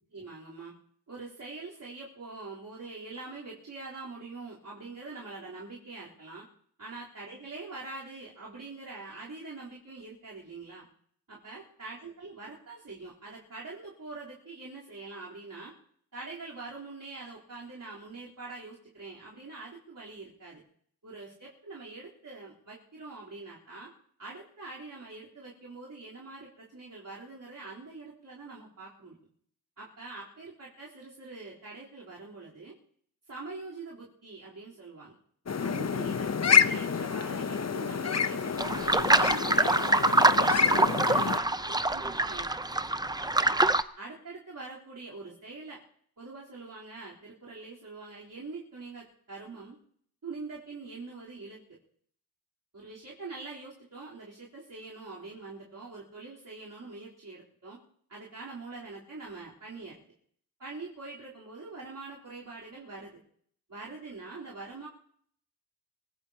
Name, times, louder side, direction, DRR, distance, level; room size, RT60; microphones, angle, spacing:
voice 1, 0.1-0.7 1.1-6.5 6.8-10.9 11.3-15.7 16.1-20.6 21.0-23.9 24.2-29.2 29.8-32.8 33.3-35.2 35.6-42.5 43.2-43.6 44.0-45.8 46.2-49.8 50.2-51.8 52.7-57.8 58.1-60.0 60.6-63.2 63.7-64.9, right 3 dB, 60° right, -7 dB, 3.8 m, -44 dB
sound 1, 35.5-41.4, left 6 dB, 45° left, 0.8 m, -28 dB
sound 2, 38.6-43.8, right 2 dB, 10° right, 0.7 m, -25 dB
24.0 x 17.0 x 2.9 m, 0.63 s
cardioid pair, 50°, 36 cm